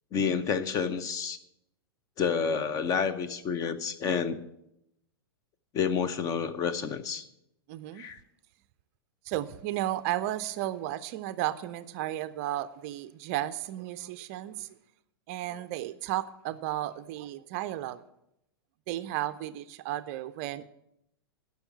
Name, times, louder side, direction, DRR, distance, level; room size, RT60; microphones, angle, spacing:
voice 1, 0.1-1.4 2.2-4.4 5.7-7.2 8.0-8.2, left 6 dB, 25° left, 13 dB, 0.7 m, -29 dB
voice 2, 7.7-8.1 9.2-14.7 15.3-18.0 18.9-20.7, right 14 dB, 40° right, 14 dB, 0.5 m, -34 dB
11.5 x 5.8 x 8.7 m, 0.82 s
figure-of-eight pair, 100°, 13 cm